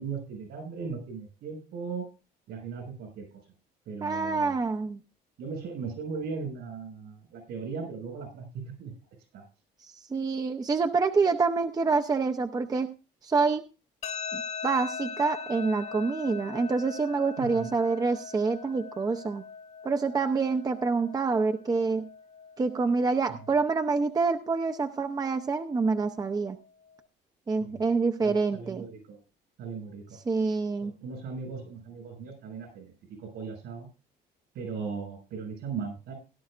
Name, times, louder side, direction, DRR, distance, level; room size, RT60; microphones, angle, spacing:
voice 1, 0.0-2.1 2.5-3.4 3.9-4.6 5.4-8.9 9.3-9.4 17.4-17.7 27.6-27.8 28.2-29.2 29.6-30.2 30.8-33.9 34.5-36.1, right 5 dB, 80° right, 5 dB, 6.1 m, -38 dB
voice 2, 4.0-5.0 9.8-12.9 13.2-13.6 14.3-19.4 19.8-22.1 22.6-26.6 27.5-28.8 30.3-30.9, right 4 dB, 20° right, 7 dB, 0.7 m, -27 dB
sound 1, 14.0-27.0, left 6 dB, 40° left, 0.9 m, -42 dB
18.0 x 11.0 x 2.5 m, 0.31 s
cardioid pair, 110°, 17 cm